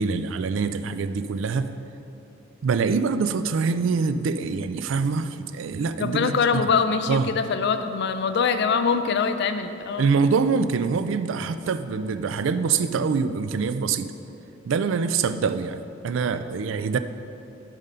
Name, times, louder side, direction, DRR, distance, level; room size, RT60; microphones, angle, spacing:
voice 1, 0.0-1.7 2.6-6.7 7.1-7.3 10.0-14.1 14.6-15.8 16.0-17.0, right 5 dB, 70° right, 11 dB, 0.4 m, -24 dB
voice 2, 6.0-10.1, left 5 dB, 60° left, 9 dB, 0.4 m, -23 dB
7.2 x 5.2 x 5.6 m, 2.7 s
head